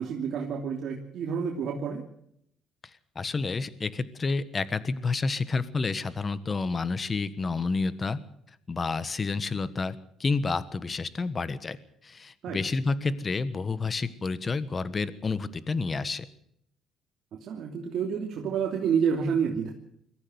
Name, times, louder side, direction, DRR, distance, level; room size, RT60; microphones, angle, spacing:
voice 1, 0.0-2.0 12.4-12.6 17.3-19.7, right 7 dB, 60° right, 0 dB, 3.0 m, -29 dB
voice 2, 2.8-8.2 8.7-11.8 12.0-16.2, left 4 dB, 30° left, 15 dB, 1.3 m, -29 dB
22.5 x 14.5 x 8.0 m, 0.72 s
cardioid pair, 105°, 0 cm